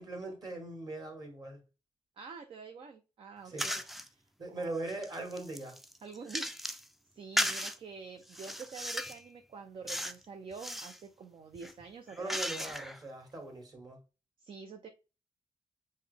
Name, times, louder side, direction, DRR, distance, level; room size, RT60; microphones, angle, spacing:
voice 1, 0.0-1.6 3.5-3.7 4.4-5.8 12.1-14.0, right 2 dB, 35° right, 1.8 m, -40 dB
voice 2, 2.2-3.8 4.1-4.2 4.5-4.7 6.0-6.7 7.1-12.4 14.4-14.9, right 5 dB, 55° right, 0.5 m, -47 dB
sound 1, 3.6-4.1 4.6-6.9 7.4-7.8 8.3-9.2 9.9-10.2 10.5-11.0 11.5-13.0, equal, ahead, 0.4 m, -36 dB
5.5 x 2.1 x 3.2 m
cardioid pair, 70°, 11 cm